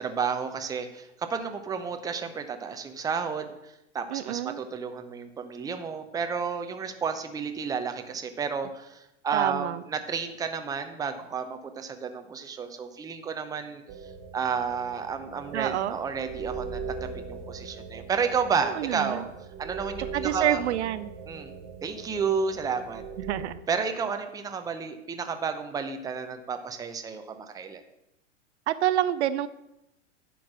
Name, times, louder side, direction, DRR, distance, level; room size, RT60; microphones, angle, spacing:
voice 1, 0.0-13.8 14.3-19.3 19.6-20.6 21.3-21.5 21.8-23.0 23.7-27.8, right 6 dB, 10° right, 7 dB, 0.6 m, -31 dB
voice 2, 4.1-4.6 9.3-9.8 15.5-16.0 18.6-19.3 20.1-21.1 23.2-23.6 28.7-29.5, right 12 dB, 65° right, 14 dB, 0.5 m, -27 dB
sound 1, 13.9-23.4, right 5 dB, 30° right, 1.0 m, -40 dB
10.5 x 4.6 x 6.1 m, 0.87 s
hypercardioid pair, 105°, 37 cm